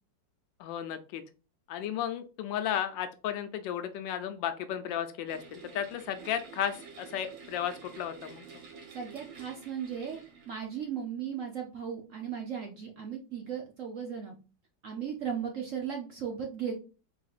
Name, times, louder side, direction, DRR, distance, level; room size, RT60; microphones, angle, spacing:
voice 1, 0.6-1.2 1.7-8.6, left 9 dB, 85° left, 9 dB, 1.3 m, -34 dB
sound 1, 5.3-10.9, right 6 dB, 90° right, 2.0 m, -50 dB
voice 2, 8.9-14.3 14.8-16.7, right 8 dB, 60° right, 2 dB, 0.8 m, -36 dB
4.2 x 3.7 x 2.4 m, 0.33 s
omnidirectional pair, 2.0 m